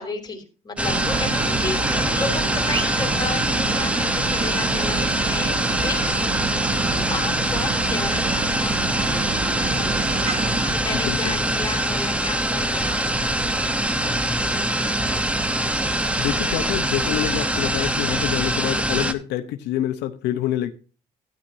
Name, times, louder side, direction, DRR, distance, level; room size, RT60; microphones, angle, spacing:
voice 1, 0.0-5.6 5.8-13.3 14.0-15.0, left 4 dB, 25° left, 3.1 m, -34 dB
sound 1, 0.8-19.1, right 1 dB, 5° right, 0.9 m, -23 dB
sound 2, 0.9-10.7, right 6 dB, 35° right, 1.3 m, -30 dB
voice 2, 10.9-11.4 16.2-20.7, left 12 dB, 85° left, 0.8 m, -26 dB
13.0 x 10.0 x 2.7 m
cardioid pair, 110°, 17 cm